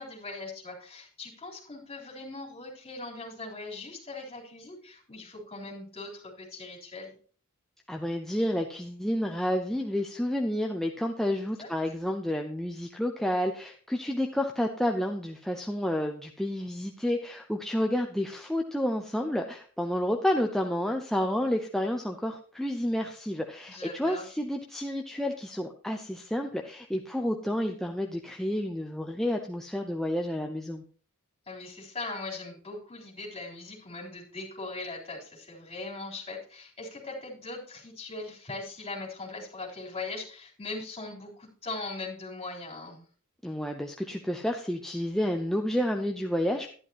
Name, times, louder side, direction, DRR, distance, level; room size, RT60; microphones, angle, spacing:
voice 1, 0.0-7.2 11.6-11.7 23.7-24.3 31.5-43.0, left 3 dB, 25° left, -3 dB, 3.8 m, -40 dB
voice 2, 7.9-30.8 43.4-46.7, left 1 dB, ahead, 2 dB, 0.7 m, -30 dB
12.0 x 11.0 x 2.9 m, 0.43 s
head